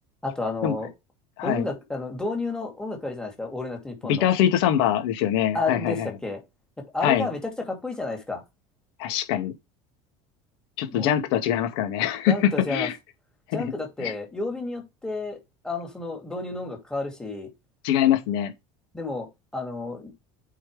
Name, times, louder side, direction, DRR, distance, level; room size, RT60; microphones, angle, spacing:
voice 1, 0.2-0.9 1.4-4.3 5.5-6.4 6.9-8.4 10.9-11.1 12.3-12.9 13.5-15.4 15.6-17.5 18.9-19.3 19.5-20.1, left 3 dB, 5° left, 2.6 m, -31 dB
voice 2, 1.4-1.7 4.1-6.1 7.0-7.3 9.0-9.5 10.8-13.0 13.5-13.6 14.0-14.1 17.8-18.5, left 10 dB, 70° left, 2.4 m, -23 dB
8.6 x 4.8 x 3.5 m
cardioid pair, 170°, 14 cm